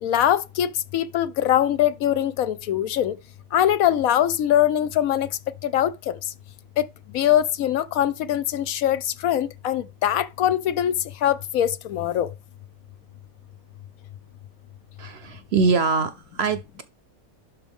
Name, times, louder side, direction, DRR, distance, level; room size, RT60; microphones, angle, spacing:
voice 1, 0.0-3.2 3.5-5.3 5.6-6.2 6.8-6.9 7.1-12.3, left 11 dB, 75° left, 1.1 m, -22 dB
voice 2, 15.0-16.8, right 4 dB, 60° right, 0.8 m, -23 dB
11.5 x 4.3 x 3.5 m
omnidirectional pair, 1.5 m